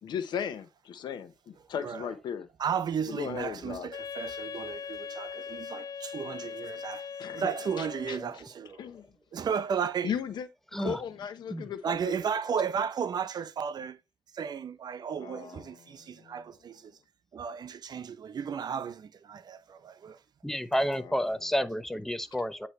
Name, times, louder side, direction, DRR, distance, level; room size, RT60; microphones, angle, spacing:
voice 1, 0.0-2.5 3.1-3.9 7.2-7.5 7.8-8.2 8.8-9.1 10.0-10.5 10.8-12.0 15.2-15.6 16.2-16.3, left 8 dB, 90° left, 0.8 m, -36 dB
voice 2, 2.6-7.1 7.3-8.9 9.3-10.2 10.8-11.0 11.8-14.0 14.3-17.0 17.3-20.2, right 7 dB, 65° right, 0.7 m, -34 dB
Wind instrument woodwind instrument, 3.9-8.4, left 7 dB, 55° left, 0.4 m, -40 dB
voice 3, 20.4-22.7, equal, 5° left, 0.7 m, -30 dB
8.2 x 2.9 x 4.3 m
cardioid pair, 65°, 7 cm